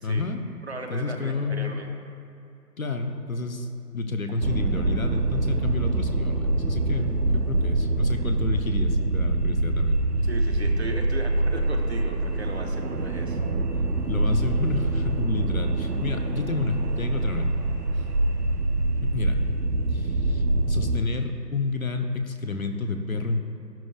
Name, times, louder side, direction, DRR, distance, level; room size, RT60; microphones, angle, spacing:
voice 1, 0.0-0.4 0.9-1.8 2.8-3.7 3.9-10.0 14.1-17.5 18.0-18.1 19.0-19.4 19.9-23.5, left 3 dB, 55° left, 5 dB, 1.0 m, -29 dB
voice 2, 0.7-1.9 10.2-13.4, right 2 dB, 40° right, 2 dB, 1.1 m, -36 dB
sound 1, 4.4-21.1, right 2 dB, 70° right, 0.9 m, -25 dB
13.0 x 12.0 x 2.5 m, 2.8 s
figure-of-eight pair, 170°, 49 cm